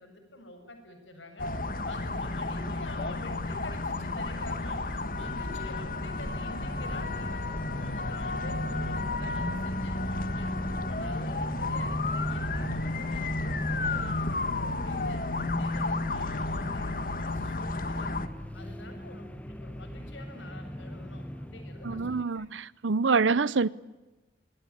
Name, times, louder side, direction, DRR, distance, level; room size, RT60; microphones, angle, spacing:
voice 1, 0.0-18.1 18.5-22.5, left 2 dB, 90° left, 7.4 m, -47 dB
sound 1, 1.4-18.3, left 2 dB, 45° left, 1.6 m, -32 dB
sound 2, 6.9-22.2, equal, 5° left, 1.1 m, -45 dB
voice 2, 21.8-23.7, right 4 dB, 85° right, 0.8 m, -26 dB
26.0 x 21.0 x 9.8 m
head